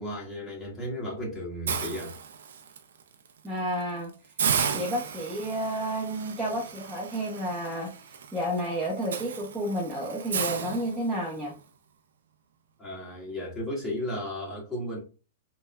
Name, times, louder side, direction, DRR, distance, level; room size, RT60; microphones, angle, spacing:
voice 1, 0.0-2.1 12.8-15.0, left 1 dB, 10° left, 1.3 m, -34 dB
Hiss, 1.7-2.8 3.3-3.5 3.8-3.9 4.4-11.5, right 7 dB, 80° right, 0.4 m, -34 dB
voice 2, 3.4-4.1 4.7-7.9 8.3-11.5, equal, 5° right, 0.7 m, -31 dB
3.5 x 2.0 x 2.2 m
hypercardioid pair, 130°, 0 cm